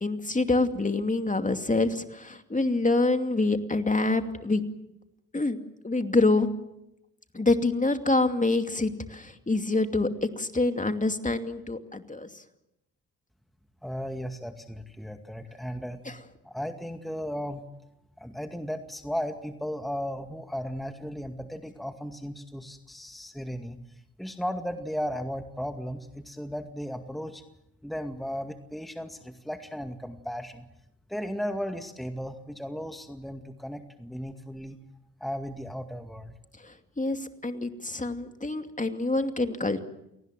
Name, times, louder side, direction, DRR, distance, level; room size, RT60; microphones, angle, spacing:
voice 1, 0.0-4.6 5.3-5.6 5.8-6.5 7.3-12.4 16.1-16.2 36.6-39.8, left 2 dB, 20° left, 7 dB, 2.5 m, -26 dB
voice 2, 13.8-16.0 16.4-17.6 18.2-23.8 24.2-27.4 27.8-30.7 31.1-34.8 35.2-36.3, equal, ahead, 6 dB, 2.2 m, -35 dB
28.5 x 19.0 x 7.6 m, 0.84 s
hypercardioid pair, 45°, 38 cm